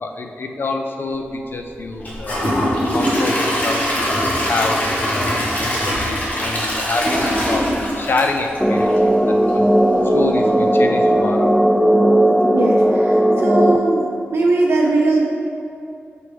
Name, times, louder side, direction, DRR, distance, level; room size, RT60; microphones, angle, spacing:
voice 1, 0.0-2.5 2.9-4.2 4.5-7.7 8.0-8.9 9.3-9.7 10.0-11.7, left 3 dB, 55° left, 4 dB, 0.5 m, -26 dB
Gurgling / Toilet flush / Trickle dribble, 2.0-9.1 9.5-9.6 10.1-10.2, equal, 40° left, 1.4 m, -21 dB
sound 1, 8.6-13.8, right 1 dB, ahead, 0.3 m, -15 dB
voice 2, 12.5-14.0 14.3-15.2, right 2 dB, 75° right, -2 dB, 0.5 m, -19 dB
6.8 x 4.4 x 3.4 m, 2.5 s
wide cardioid pair, 85°, 4 cm